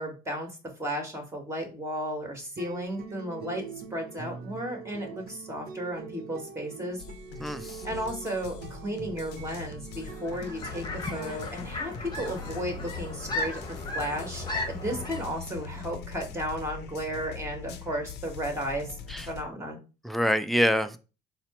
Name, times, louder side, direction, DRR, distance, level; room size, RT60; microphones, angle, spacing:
voice 1, 0.0-3.6 3.9-7.0 7.8-19.0 19.3-19.8, equal, 15° right, 1.7 m, -34 dB
sound 1, 2.6-11.4, right 5 dB, 60° right, 0.7 m, -43 dB
sound 2, 7.0-19.4, left 6 dB, 70° left, 0.6 m, -42 dB
voice 2, 7.4-7.8 19.1-19.3 20.0-21.0, equal, ahead, 0.5 m, -26 dB
sound 3, 10.0-15.2, left 2 dB, 25° left, 1.1 m, -36 dB
4.1 x 2.0 x 4.3 m
supercardioid pair, 65°, 18 cm